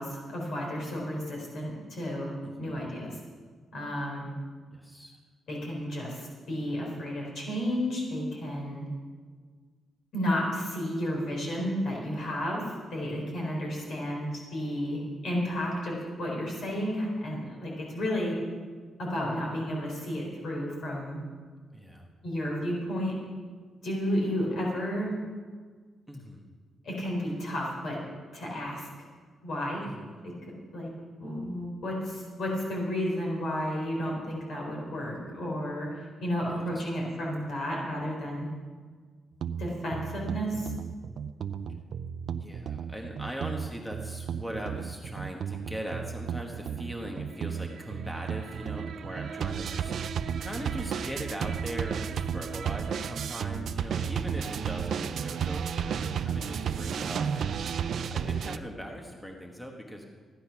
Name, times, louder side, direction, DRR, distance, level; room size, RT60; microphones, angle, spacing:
voice 1, 0.0-2.3 2.6-3.2 3.7-4.3 5.5-8.9 10.1-18.4 19.0-21.2 22.2-23.2 23.8-25.1 26.8-28.0 28.3-28.9 29.4-29.8 30.2-30.3 30.7-30.9 31.2-38.5 39.6-40.7, equal, 60° left, -2 dB, 4.0 m, -32 dB
voice 2, 2.4-2.8 4.7-5.2 21.7-22.1 26.1-26.4 29.8-30.0 36.5-36.7 42.4-57.5 58.1-60.1, equal, 5° left, 1 dB, 1.2 m, -40 dB
sound 1, 39.4-58.6, right 7 dB, 55° right, 0.5 m, -33 dB
15.0 x 10.0 x 5.9 m, 1.6 s
wide cardioid pair, 180°, 0 cm